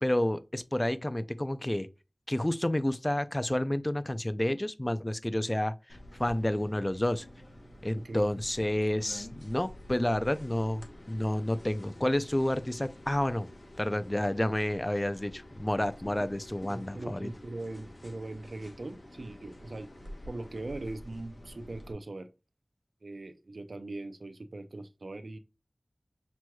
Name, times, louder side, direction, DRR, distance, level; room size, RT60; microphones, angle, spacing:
voice 1, 0.0-1.9 2.3-5.7 6.2-7.3 7.8-13.5 13.8-17.3, left 1 dB, 25° left, 0.4 m, -30 dB
sound 1, 5.9-21.9, left 1 dB, 60° left, 1.0 m, -49 dB
voice 2, 7.9-8.3 16.6-19.9 20.3-22.3 23.0-25.4, right 2 dB, 75° right, 0.5 m, -40 dB
6.1 x 3.0 x 2.2 m
wide cardioid pair, 50°, 0 cm